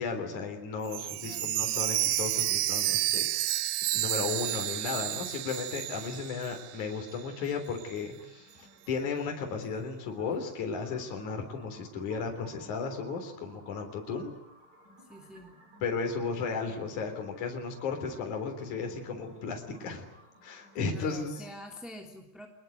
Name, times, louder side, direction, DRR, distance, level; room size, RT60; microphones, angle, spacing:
voice 1, 0.0-3.6 3.9-14.3 15.8-20.0 20.4-21.4, left 5 dB, 50° left, 3 dB, 4.7 m, -35 dB
Chime, 0.9-6.8 7.1-7.2 7.8-7.9, right 15 dB, 75° right, 2.9 m, -30 dB
voice 2, 1.2-1.5 15.0-15.6 20.9-22.5, left 1 dB, ahead, 2 dB, 2.1 m, -46 dB
sound 1, 8.1-21.7, right 1 dB, 40° right, 8.5 m, -58 dB
25.0 x 21.0 x 9.3 m, 0.85 s
omnidirectional pair, 4.8 m